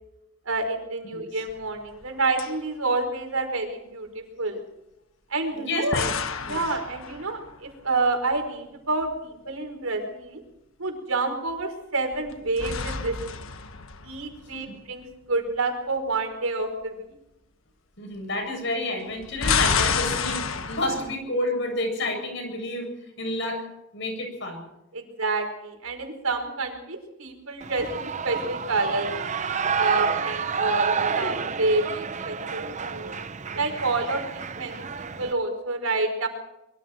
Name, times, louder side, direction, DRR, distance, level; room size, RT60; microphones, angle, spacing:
voice 1, 0.4-4.6 5.3-6.0 6.4-10.4 10.8-13.2 14.0-17.0 24.9-29.1 29.8-33.1 33.5-36.3, right 3 dB, 85° right, 4 dB, 5.0 m, -28 dB
voice 2, 1.1-1.4 5.5-6.1 6.4-6.6 14.7-14.8 18.0-22.9 23.2-23.6 23.9-24.6, left 1 dB, 60° left, 3 dB, 7.8 m, -30 dB
sound 1, 1.5-2.1 2.4-2.5 5.9-7.6 12.1-14.7 19.1-21.1, left 5 dB, 75° left, 1.5 m, -29 dB
Shout / Cheering, 27.6-35.3, right 6 dB, 35° right, 0.7 m, -29 dB
25.0 x 23.0 x 4.6 m, 0.88 s
head